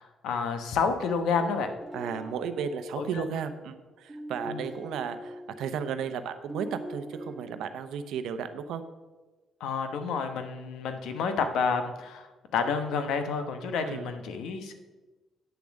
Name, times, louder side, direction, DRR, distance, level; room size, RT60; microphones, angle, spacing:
voice 1, 0.0-1.7 3.0-3.2 4.5-4.7 9.6-12.3 12.5-14.7, left 5 dB, 80° left, 7 dB, 1.0 m, -29 dB
sound 1, 1.3-6.2 6.5-7.6, equal, 20° right, 1.6 m, -42 dB
voice 2, 1.9-8.8 13.9-14.1, right 7 dB, 80° right, 10 dB, 0.7 m, -34 dB
8.3 x 7.0 x 6.4 m, 1.2 s
cardioid pair, 90°, 0 cm